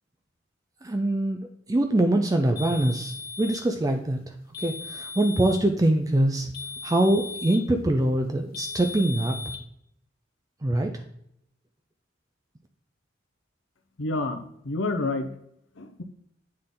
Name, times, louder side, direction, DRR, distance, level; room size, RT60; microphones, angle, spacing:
voice 1, 0.8-6.5 6.8-9.4 10.6-10.9, right 1 dB, 20° right, 5 dB, 0.4 m, -24 dB
sound 1, 2.6-3.7 4.5-5.7 6.5-7.7 8.5-9.6, left 4 dB, 50° left, 1.2 m, -37 dB
voice 2, 14.0-15.3 15.8-16.0, left 2 dB, 80° left, 7 dB, 0.8 m, -29 dB
8.7 x 3.9 x 3.7 m, 0.74 s
head